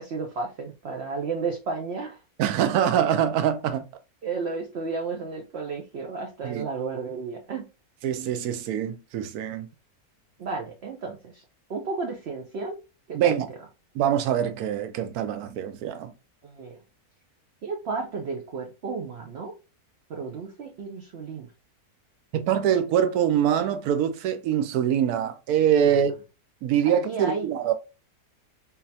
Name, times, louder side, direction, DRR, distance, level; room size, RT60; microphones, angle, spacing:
voice 1, 0.0-2.2 4.2-7.7 10.4-11.4 11.7-12.8 13.1-13.4 16.4-16.8 17.6-19.5 20.1-21.5 25.9-26.0 26.8-27.5, right 4 dB, 55° right, 0.8 m, -33 dB
voice 2, 2.4-3.8 6.4-6.6 8.0-9.7 13.1-13.5 13.9-16.1 22.3-26.1 26.6-27.7, right 9 dB, 75° right, 1.1 m, -24 dB
3.9 x 2.7 x 2.6 m
omnidirectional pair, 1.6 m